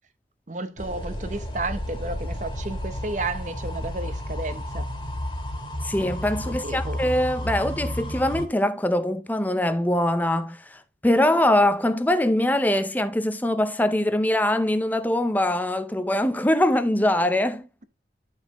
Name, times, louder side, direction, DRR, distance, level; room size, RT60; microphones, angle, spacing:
voice 1, 0.5-4.9 6.5-7.0, right 2 dB, 40° right, 0.9 m, -32 dB
sound 1, 0.8-8.5, equal, 25° left, 2.0 m, -32 dB
voice 2, 5.8-17.7, left 1 dB, 10° left, 0.7 m, -23 dB
11.5 x 5.9 x 3.0 m
head